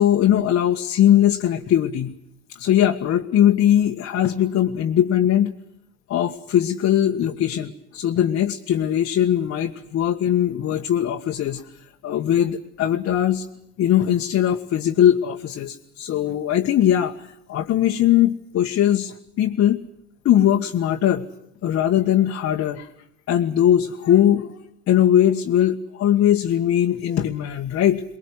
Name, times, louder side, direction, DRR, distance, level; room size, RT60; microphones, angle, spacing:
voice 1, 0.0-2.1 2.5-5.5 6.1-11.6 12.0-13.4 13.8-17.1 17.5-19.8 20.2-21.2 21.6-22.9 23.3-24.5 24.9-28.0, left 11 dB, 40° left, 2 dB, 1.6 m, -20 dB
23.5 x 22.0 x 9.6 m, 0.74 s
hypercardioid pair, 70°, 34 cm